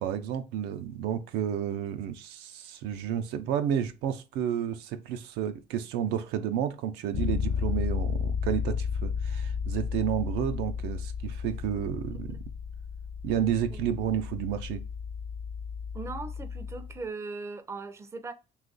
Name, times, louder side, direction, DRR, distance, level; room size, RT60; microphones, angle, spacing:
voice 1, 0.0-12.4 13.2-14.8, right 9 dB, 90° right, 0.4 m, -31 dB
Bass guitar, 7.1-17.0, left 6 dB, 50° left, 0.7 m, -33 dB
voice 2, 15.9-18.3, right 3 dB, 15° right, 0.4 m, -39 dB
2.9 x 2.4 x 3.8 m
cardioid pair, 110°, 17 cm